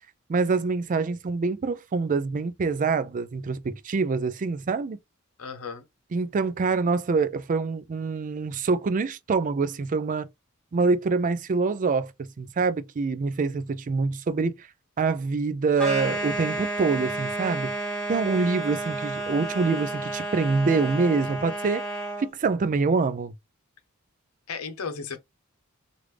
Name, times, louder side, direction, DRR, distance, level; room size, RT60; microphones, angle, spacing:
voice 1, 0.3-5.0 6.1-10.3 10.7-14.7 15.0-17.7 18.1-21.8 22.2-23.3, right 4 dB, 35° right, 0.4 m, -25 dB
voice 2, 5.4-5.8 24.5-25.2, left 5 dB, 85° left, 0.7 m, -34 dB
sound 1, 15.8-22.3, right 2 dB, 5° left, 1.6 m, -31 dB
3.3 x 2.5 x 3.1 m
head